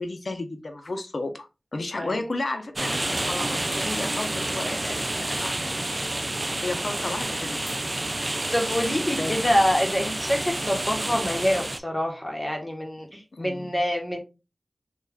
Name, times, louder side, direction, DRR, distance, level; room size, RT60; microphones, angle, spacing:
voice 1, 0.0-5.5 6.6-7.8 9.1-9.4 13.3-13.8, left 2 dB, 65° left, 5 dB, 0.6 m, -33 dB
sound 1, 2.8-11.8, right 1 dB, 35° right, 0.4 m, -29 dB
voice 2, 8.5-14.2, equal, 20° left, 2 dB, 1.3 m, -26 dB
3.2 x 2.4 x 3.4 m, 0.27 s
cardioid pair, 45°, 0 cm